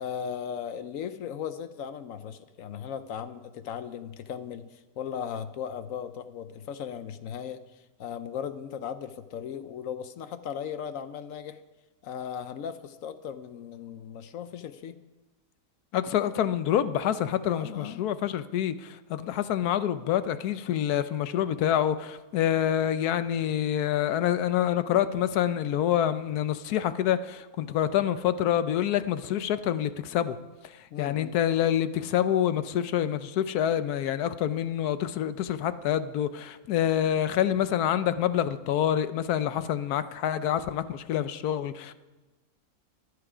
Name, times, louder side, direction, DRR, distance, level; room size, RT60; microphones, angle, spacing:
voice 1, 0.0-11.6 12.0-15.0 17.5-18.0 30.9-31.3, left 8 dB, 65° left, 1.0 m, -37 dB
voice 2, 15.9-30.4 30.6-41.9, left 10 dB, 85° left, 1.2 m, -27 dB
22.5 x 8.0 x 5.0 m
omnidirectional pair, 1.6 m